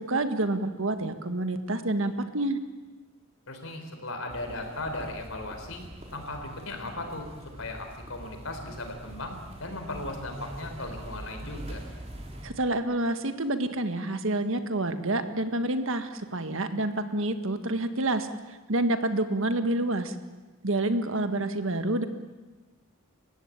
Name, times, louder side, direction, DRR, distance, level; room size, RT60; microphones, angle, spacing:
voice 1, 0.0-2.6 12.4-20.2 20.6-22.1, right 2 dB, 70° right, 8 dB, 1.8 m, -28 dB
voice 2, 3.5-5.8 6.1-7.3 7.6-11.8, left 2 dB, 70° left, 5 dB, 4.6 m, -37 dB
sound 1, 4.3-12.5, right 1 dB, 30° right, 4.0 m, -43 dB
29.0 x 15.5 x 8.9 m, 1.2 s
head